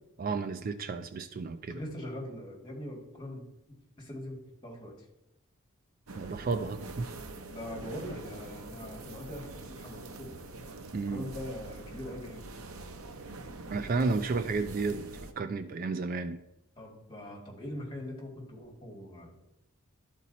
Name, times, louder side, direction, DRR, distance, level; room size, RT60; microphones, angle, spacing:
voice 1, 0.2-1.8 6.2-7.1 10.9-11.2 13.7-15.1 15.4-16.4, right 4 dB, 40° right, 10 dB, 0.3 m, -32 dB
voice 2, 1.7-3.5 4.0-5.1 7.5-10.4 11.1-12.4 16.8-19.3, left 1 dB, 20° left, -2 dB, 2.1 m, -42 dB
sound 1, 6.1-15.3, right 3 dB, 80° right, 0.7 m, -45 dB
12.0 x 4.3 x 4.1 m, 0.87 s
head